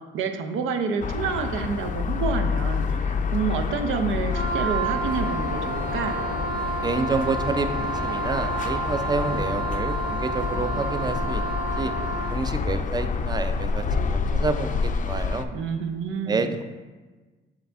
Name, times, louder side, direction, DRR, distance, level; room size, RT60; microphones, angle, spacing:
voice 1, 0.1-6.2 15.5-16.6, right 5 dB, 85° right, 6 dB, 0.6 m, -28 dB
sound 1, 1.0-15.4, left 5 dB, 40° left, 0.4 m, -28 dB
Wind instrument woodwind instrument, 4.3-12.4, right 3 dB, 50° right, 1.6 m, -30 dB
voice 2, 6.8-11.9 12.3-13.8 14.3-15.5 16.3-16.6, right 3 dB, 20° right, 9 dB, 0.5 m, -28 dB
6.8 x 4.1 x 3.4 m, 1.3 s
cardioid pair, 90°, 20 cm